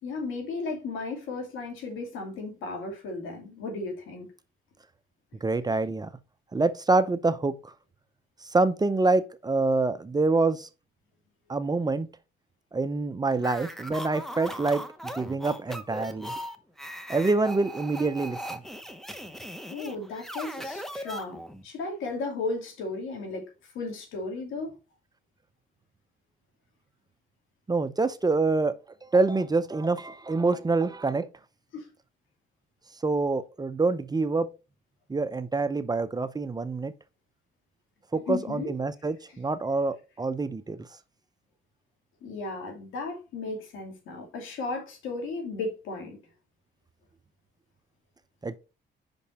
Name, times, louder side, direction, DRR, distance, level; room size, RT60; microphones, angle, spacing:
voice 1, 0.0-4.3 19.7-23.5 23.7-24.7 31.7-31.9 38.1-38.7 42.2-46.2, left 3 dB, 90° left, 2.4 m, -35 dB
voice 2, 5.4-6.1 6.5-7.7 8.4-10.7 11.5-12.1 12.7-16.3 17.1-18.6 27.7-28.7 29.1-31.3 33.0-34.5 35.1-36.9 38.1-40.9 48.4-48.6, right 3 dB, 20° right, 0.6 m, -26 dB
sound 1, 13.4-21.6, equal, ahead, 0.9 m, -39 dB
5.7 x 5.3 x 4.1 m
cardioid pair, 90°, 20 cm